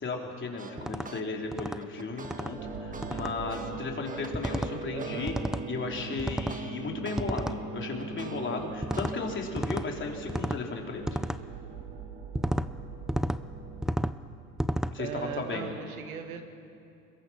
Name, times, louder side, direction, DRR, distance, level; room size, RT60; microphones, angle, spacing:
voice 1, 0.0-5.3 5.7-11.2 14.9-15.7, left 4 dB, 25° left, 1 dB, 4.0 m, -35 dB
sound 1, 0.6-1.2 1.6-7.2 7.6-9.4, right 4 dB, 20° right, 1.4 m, -45 dB
sound 2, 0.8-1.1 1.5-1.8 2.2-2.5 3.0-3.3 4.3-4.7 5.3-5.7 6.2-6.6 7.2-7.6 8.8-9.1 9.6-9.9 10.3-10.6 11.1-11.4 12.3-12.7 13.1-13.4 13.8-14.2 14.6-14.9, right 1 dB, ahead, 0.4 m, -31 dB
sound 3, 2.6-13.8, right 3 dB, 60° right, 5.4 m, -41 dB
voice 2, 4.9-5.3 15.0-16.4, right 7 dB, 90° right, 6 dB, 2.0 m, -38 dB
25.5 x 22.0 x 5.9 m, 2.5 s
hypercardioid pair, 85°, 42 cm